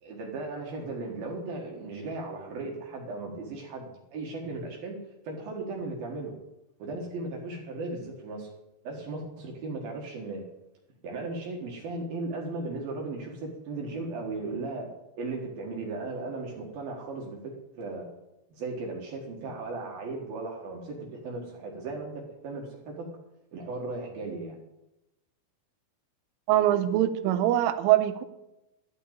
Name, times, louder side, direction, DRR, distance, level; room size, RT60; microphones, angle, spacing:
voice 1, 0.0-5.0 5.2-6.3 6.8-8.5 8.8-10.4 11.0-14.9 15.2-18.1 18.6-23.1 23.5-24.6, right 3 dB, 60° right, -1 dB, 2.8 m, -36 dB
voice 2, 26.5-28.3, right 13 dB, 80° right, 9 dB, 3.2 m, -23 dB
13.0 x 5.8 x 8.6 m, 0.92 s
omnidirectional pair, 5.8 m